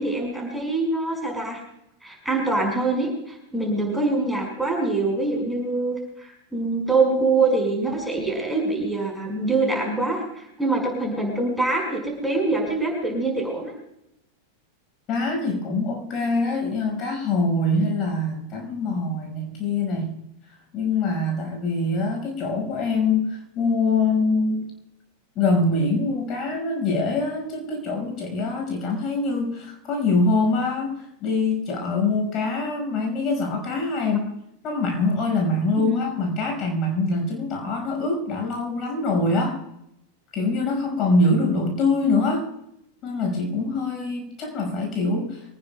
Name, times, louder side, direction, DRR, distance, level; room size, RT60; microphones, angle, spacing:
voice 1, 0.0-1.6 2.0-13.7 35.8-36.0, right 3 dB, ahead, 0 dB, 5.3 m, -24 dB
voice 2, 15.1-20.2 20.7-24.6 25.4-34.3 34.6-39.6 40.3-42.5 43.0-45.4, left 3 dB, 35° left, 3 dB, 5.5 m, -24 dB
24.5 x 19.0 x 2.3 m, 0.80 s
figure-of-eight pair, 90°, 0 cm